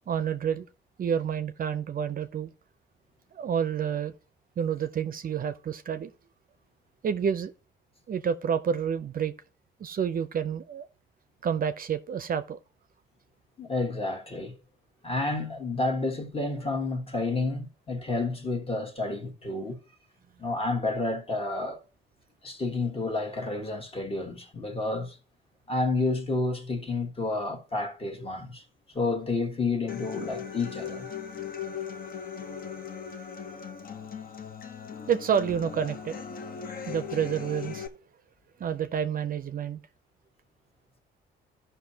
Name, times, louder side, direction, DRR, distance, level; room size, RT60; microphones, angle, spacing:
voice 1, 0.1-0.7 1.0-2.5 3.3-4.1 4.6-6.1 7.0-7.5 8.1-9.3 9.8-10.8 11.4-12.6 35.1-36.2 36.9-37.9 38.6-39.8, right 8 dB, 45° right, 0.5 m, -29 dB
voice 2, 13.6-14.5 15.0-19.8 20.4-21.8 22.4-25.2 25.7-28.6 28.9-31.1, left 3 dB, 30° left, 1.4 m, -30 dB
Human voice / Acoustic guitar, 29.9-37.9, left 7 dB, 45° left, 0.8 m, -38 dB
14.0 x 5.6 x 2.8 m
cardioid pair, 90°, 20 cm